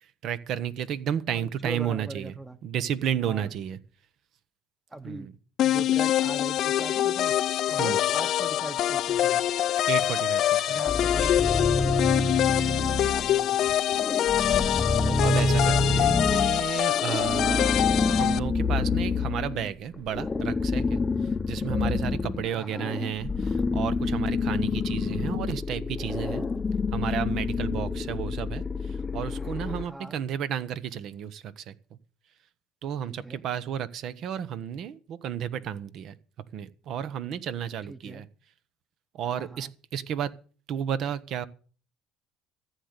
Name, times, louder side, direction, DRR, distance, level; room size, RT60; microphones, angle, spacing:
voice 1, 0.2-2.4 2.6-3.8 5.0-5.3 7.8-8.0 9.9-10.8 12.4-12.7 14.4-14.7 15.0-21.0 21.5-26.5 26.9-31.7 32.8-36.2 36.5-38.3 39.1-40.3 40.7-41.5, right 9 dB, 55° right, 1.1 m, -32 dB
voice 2, 1.3-2.6 3.2-3.5 4.9-5.3 5.6-7.3 7.7-9.4 10.7-12.1 12.6-13.8 22.5-22.9 29.8-30.2 33.0-33.4 37.8-38.2 39.3-39.7, right 2 dB, 10° right, 1.1 m, -41 dB
sound 1, 5.6-18.4, left 12 dB, 55° left, 0.6 m, -25 dB
sound 2, 10.9-13.3 13.7-29.9, left 3 dB, 20° left, 0.8 m, -27 dB
14.5 x 8.2 x 8.3 m
cardioid pair, 120°, 0 cm